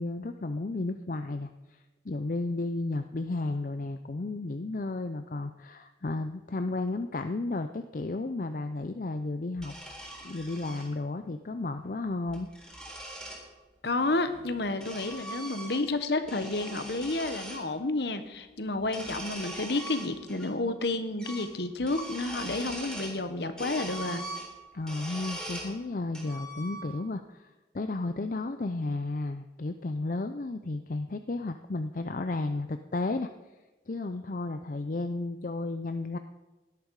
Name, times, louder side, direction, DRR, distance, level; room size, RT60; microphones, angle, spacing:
voice 1, 0.0-9.7 10.2-12.5 24.7-27.5 27.7-33.3 33.9-36.2, left 2 dB, 45° left, 8 dB, 0.5 m, -33 dB
sound 1, 9.6-10.9 12.1-13.4 14.3-16.0 16.2-17.6 18.8-20.5 20.8-20.9 21.2-21.5 21.8-23.2 23.6-25.7 26.1-27.1, right 1 dB, 5° left, 4.0 m, -41 dB
voice 2, 13.8-24.2, left 2 dB, 65° left, 9 dB, 1.2 m, -30 dB
17.5 x 12.0 x 4.8 m, 1.1 s
head